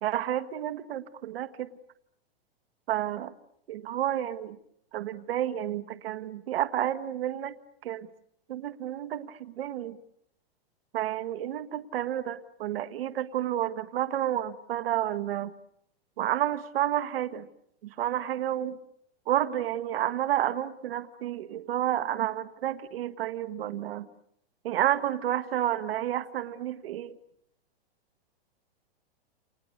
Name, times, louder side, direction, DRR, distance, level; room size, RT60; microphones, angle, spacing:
voice 1, 0.0-1.7 2.9-3.3 3.7-4.6 4.9-7.5 7.8-8.1 8.5-10.0 10.9-15.5 16.2-17.5 17.8-18.8 19.3-24.1 24.6-27.2, right 12 dB, 65° right, 1.6 m, -30 dB
29.5 x 28.0 x 6.7 m
hypercardioid pair, 145°, 31 cm